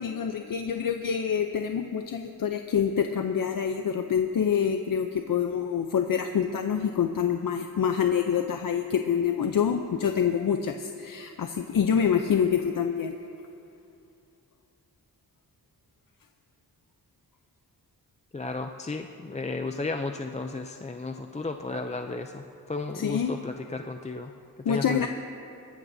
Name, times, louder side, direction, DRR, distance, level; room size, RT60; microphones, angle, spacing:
voice 1, 0.0-13.1 22.9-23.3 24.6-25.1, left 7 dB, 60° left, 5 dB, 0.7 m, -26 dB
voice 2, 18.3-24.3 24.7-25.1, left 3 dB, 20° left, 5 dB, 0.4 m, -34 dB
25.5 x 14.5 x 2.7 m, 2.6 s
wide cardioid pair, 135°, 37 cm